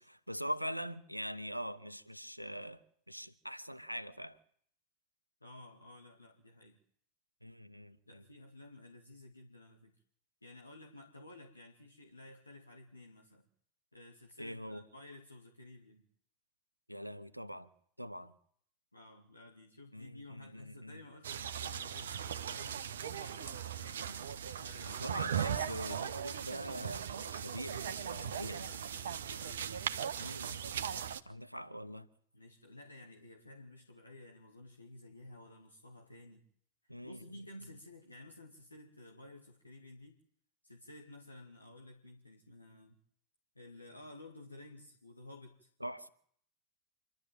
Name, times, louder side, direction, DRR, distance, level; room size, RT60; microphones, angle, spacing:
voice 1, 0.0-2.8 3.1-4.4 7.4-8.2 14.4-14.8 16.9-17.7 18.0-18.3 19.9-21.0 24.8-28.6 30.2-30.9 31.2-32.1 36.9-37.3 45.8-46.1, equal, 90° right, 1.1 m, -43 dB
voice 2, 5.4-6.8 8.1-9.9 10.4-13.4 13.9-16.1 18.9-25.1 27.7-29.8 32.3-36.4 36.8-40.2 40.6-43.0 43.6-45.7, left 1 dB, 85° left, 2.2 m, -54 dB
sound 1, 21.2-31.2, right 8 dB, 65° right, 1.1 m, -39 dB
26.5 x 12.0 x 9.1 m
figure-of-eight pair, 90°, 0 cm